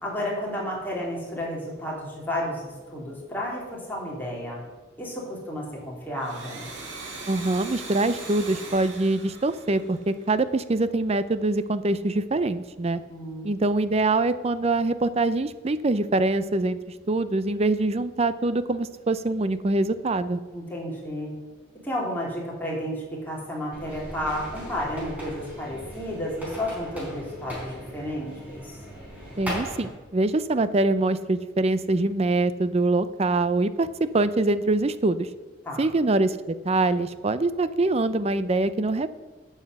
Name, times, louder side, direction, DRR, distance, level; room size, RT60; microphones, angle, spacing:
voice 1, 0.0-4.6 5.0-6.7 13.1-13.5 20.5-21.3 21.8-28.8 35.6-35.9, equal, 10° left, -4 dB, 3.3 m, -32 dB
Domestic sounds home sounds, 6.1-10.6, right 3 dB, 85° right, 2.3 m, -40 dB
voice 2, 7.3-13.0 13.4-16.8 17.1-20.4 29.4-35.3 35.8-39.1, right 2 dB, 35° right, 14 dB, 0.5 m, -24 dB
sound 1, 23.7-29.9, equal, 10° right, 4.1 m, -38 dB
9.6 x 7.3 x 8.0 m, 1.3 s
head